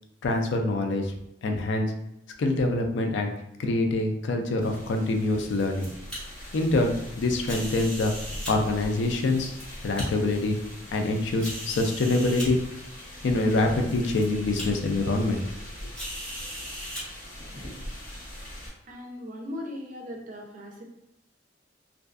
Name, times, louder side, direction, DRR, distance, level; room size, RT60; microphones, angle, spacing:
voice 1, 0.2-1.1 1.4-1.9 2.4-3.3 3.6-5.9 6.5-8.1 8.5-9.5 9.8-10.6 10.9-12.6 13.2-15.4, left 2 dB, 80° left, 4 dB, 0.4 m, -25 dB
sound 1, 4.6-18.7, equal, 50° left, 0.9 m, -42 dB
sound 2, 5.5-6.2 7.4-8.5 9.2-10.0 10.7-10.8 11.4-12.5 13.4-13.5 13.9-14.2 14.6-14.7 15.9-17.0, equal, 5° left, 1.0 m, -38 dB
voice 2, 18.9-20.8, left 1 dB, 45° right, 1 dB, 0.4 m, -38 dB
2.5 x 2.2 x 2.4 m, 0.82 s
head